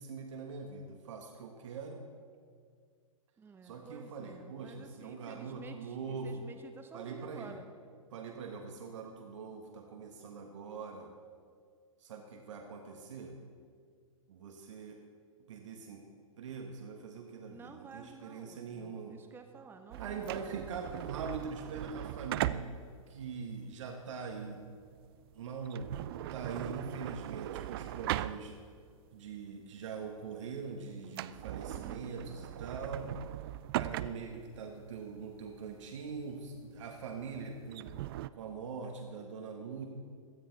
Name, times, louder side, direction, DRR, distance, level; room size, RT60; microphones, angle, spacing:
voice 1, 0.0-2.0 3.6-6.4 6.9-7.6 8.1-11.1 12.0-13.3 14.3-15.0 15.5-16.0 16.4-19.2 20.0-22.7 23.1-24.7 25.3-28.5 29.1-33.1 33.7-37.9 38.3-39.8, right 5 dB, 60° right, 2 dB, 1.4 m, -43 dB
voice 2, 3.4-7.7 17.5-20.6 31.7-32.3, right 5 dB, 10° right, 5 dB, 1.0 m, -52 dB
sound 1, 19.9-28.9 29.3-29.4 30.0-30.3 30.6-30.7 31.0-38.3, right 14 dB, 45° right, 0.4 m, -39 dB
16.5 x 12.5 x 4.0 m, 2.1 s
figure-of-eight pair, 110°, 18 cm